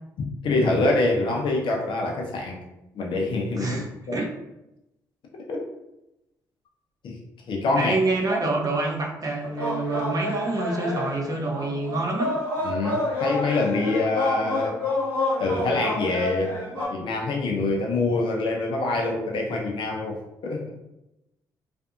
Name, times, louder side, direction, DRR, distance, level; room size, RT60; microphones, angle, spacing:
voice 1, 0.4-2.6 2.9-4.2 5.5-5.6 7.0-7.2 7.5-7.9 12.6-14.8 15.4-16.6 16.9-20.7, left 2 dB, 60° left, 0 dB, 0.6 m, -25 dB
voice 2, 3.6-3.9 4.1-4.3 7.8-12.4, right 2 dB, 40° right, -1 dB, 0.6 m, -27 dB
sound 1, 9.4-16.9, left 2 dB, 90° right, 1.0 m, -28 dB
2.5 x 2.5 x 2.3 m, 0.91 s
hypercardioid pair, 45°, 10 cm